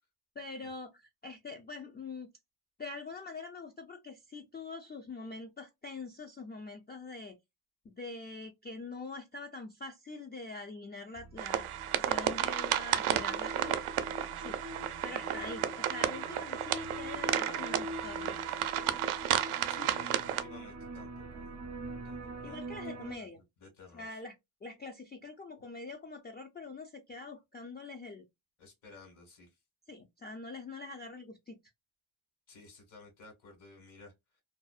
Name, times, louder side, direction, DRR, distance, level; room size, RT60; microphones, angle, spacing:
voice 1, 0.4-2.3 2.8-7.4 7.8-13.8 14.4-14.6 15.0-18.3 22.4-23.4 23.9-24.4 24.6-28.2 29.9-31.6, left 3 dB, 25° left, 0.3 m, -44 dB
sound 1, 11.2-23.2, right 1 dB, 35° right, 0.5 m, -44 dB
sound 2, 11.4-20.4, right 11 dB, 80° right, 0.5 m, -32 dB
voice 2, 19.7-21.5 22.0-23.3 23.6-24.2 28.6-29.6 32.5-34.4, left 3 dB, 65° left, 1.4 m, -54 dB
2.6 x 2.0 x 2.3 m
cardioid pair, 85°, 50 cm